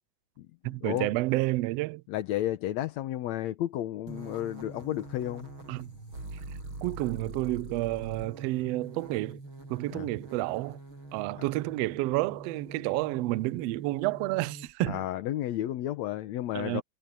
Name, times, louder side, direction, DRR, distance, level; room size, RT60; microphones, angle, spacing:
voice 1, 0.6-2.0 5.7-5.9 6.8-9.4 9.7-10.8 11.1-15.0 16.5-16.8, right 19 dB, 80° right, 1.5 m, -30 dB
voice 2, 2.1-5.5 9.9-10.1 11.4-11.5 14.9-16.8, left 13 dB, 75° left, 2.2 m, -32 dB
sound 1, 4.1-15.0, right 2 dB, 45° right, 8.8 m, -44 dB
omnidirectional pair, 3.3 m